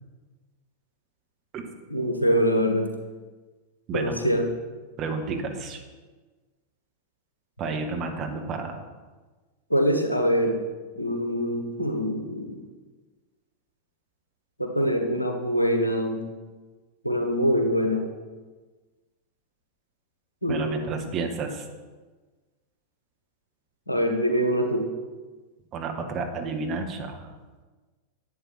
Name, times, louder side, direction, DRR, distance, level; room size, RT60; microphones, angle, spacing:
voice 1, 1.9-2.9 3.9-4.5 9.7-10.6 10.9-12.6 14.6-16.2 17.0-18.0 20.4-20.9 23.9-24.9, equal, 85° left, 4 dB, 1.3 m, -24 dB
voice 2, 5.0-5.8 7.6-8.8 20.5-21.6 25.7-27.2, right 4 dB, 35° right, 4 dB, 1.5 m, -31 dB
11.0 x 7.9 x 4.3 m, 1.3 s
figure-of-eight pair, 90°, 0 cm